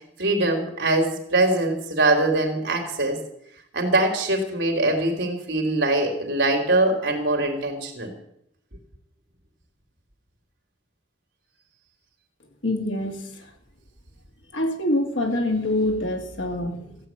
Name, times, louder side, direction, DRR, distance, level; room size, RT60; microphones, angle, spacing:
voice 1, 0.2-3.2 3.7-8.1, right 2 dB, 65° right, 2 dB, 3.3 m, -22 dB
voice 2, 12.6-13.5 14.5-17.0, left 1 dB, 75° left, 3 dB, 2.6 m, -25 dB
15.5 x 7.5 x 8.9 m, 0.75 s
head